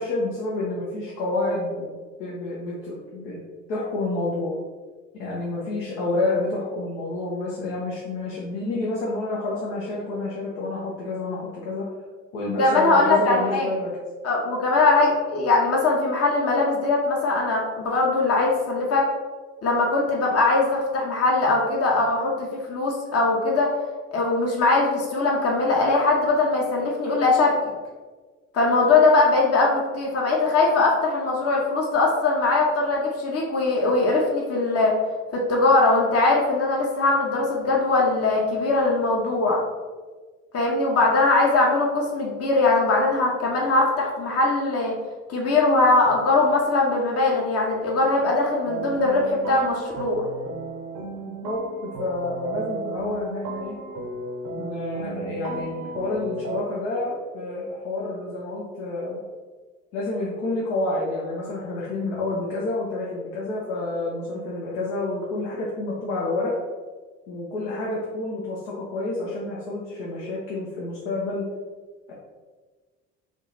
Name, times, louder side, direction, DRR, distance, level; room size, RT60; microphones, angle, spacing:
voice 1, 0.0-1.9 2.2-3.4 3.7-4.6 5.1-11.9 12.3-13.9 51.2-53.8 54.6-59.2 59.9-66.6 67.3-71.5, left 2 dB, 70° left, -5 dB, 0.9 m, -29 dB
voice 2, 12.6-13.7 14.2-19.0 19.6-23.7 24.1-27.5 28.5-34.9 35.3-39.6 40.5-45.0 45.3-50.2, left 3 dB, 40° left, -1 dB, 1.0 m, -21 dB
sound 1, 48.7-56.6, right 3 dB, 45° right, 0.7 m, -34 dB
3.7 x 3.1 x 3.8 m, 1.4 s
figure-of-eight pair, 50°, 38 cm